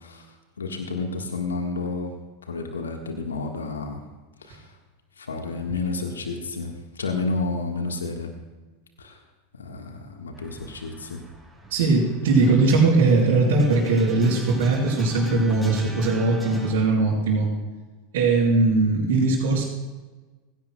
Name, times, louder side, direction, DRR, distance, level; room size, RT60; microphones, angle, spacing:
voice 1, 0.0-2.1 2.4-4.0 4.4-4.8 5.1-8.3 9.0-9.2 9.5-11.2, left 3 dB, 80° left, 4 dB, 1.5 m, -31 dB
sound 1, 10.4-16.7, equal, ahead, 5.1 m, -39 dB
voice 2, 11.7-17.5 18.1-19.6, right 3 dB, 65° right, -10 dB, 4.5 m, -20 dB
17.5 x 16.5 x 2.3 m, 1.3 s
figure-of-eight pair, 85°, 0 cm